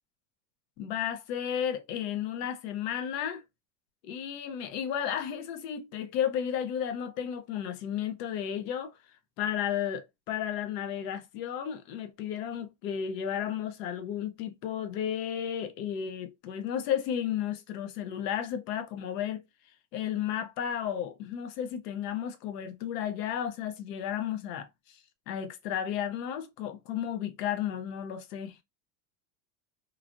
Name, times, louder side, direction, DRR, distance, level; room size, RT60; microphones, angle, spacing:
voice 1, 0.8-3.4 4.0-9.0 9.4-19.4 19.9-25.0 25.3-28.6, left 9 dB, 80° left, 0.8 m, -33 dB
3.1 x 2.4 x 2.5 m
cardioid pair, 155°, 48 cm